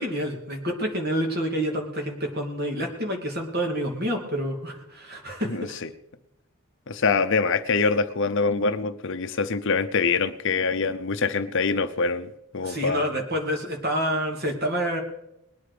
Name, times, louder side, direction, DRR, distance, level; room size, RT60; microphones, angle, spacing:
voice 1, 0.0-5.8 12.6-15.0, equal, 45° right, 2 dB, 2.6 m, -28 dB
voice 2, 5.4-5.9 6.9-13.1, left 4 dB, 60° left, 11 dB, 0.7 m, -25 dB
20.5 x 9.5 x 5.0 m, 0.84 s
head